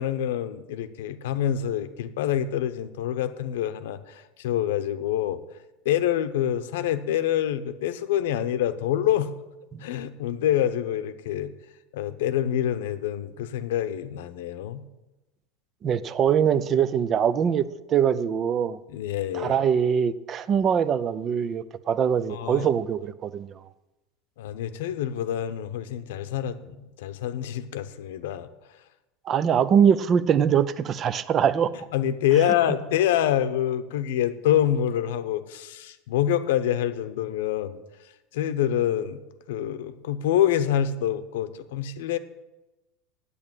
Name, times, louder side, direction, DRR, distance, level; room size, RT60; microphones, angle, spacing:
voice 1, 0.0-5.4 5.8-9.3 9.8-11.5 11.9-14.8 18.9-19.5 22.3-22.7 24.4-28.5 31.9-37.8 38.3-39.2 39.5-42.2, left 10 dB, 85° left, 11 dB, 0.9 m, -26 dB
voice 2, 15.8-18.8 19.3-23.5 29.3-31.7, right 8 dB, 25° right, 16 dB, 0.5 m, -23 dB
8.6 x 8.4 x 9.0 m, 1.0 s
supercardioid pair, 160°, 0 cm